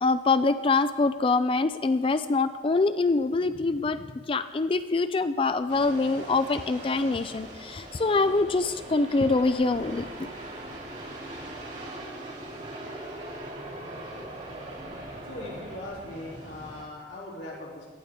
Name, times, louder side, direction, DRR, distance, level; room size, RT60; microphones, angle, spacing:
voice 1, 0.0-10.1, left 3 dB, 30° left, 11 dB, 0.4 m, -25 dB
sound 1, 5.7-16.8, right 1 dB, 45° right, 2.8 m, -41 dB
voice 2, 15.3-17.9, left 1 dB, 85° left, -5 dB, 3.3 m, -40 dB
18.5 x 12.5 x 3.7 m, 1.4 s
head